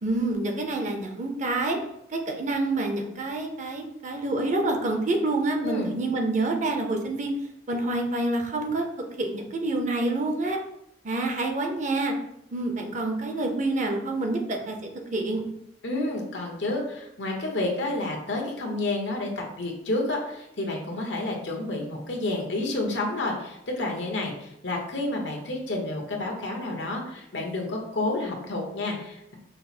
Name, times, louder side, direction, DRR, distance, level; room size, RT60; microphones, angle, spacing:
voice 1, 0.0-1.8 2.1-7.3 7.7-8.8 9.2-10.6 11.0-12.1 12.5-14.8 15.1-15.4, right 2 dB, 45° right, 3 dB, 0.7 m, -27 dB
voice 2, 5.6-5.9 15.8-29.3, left 2 dB, 85° left, 1 dB, 1.1 m, -30 dB
5.6 x 2.0 x 4.2 m, 0.81 s
head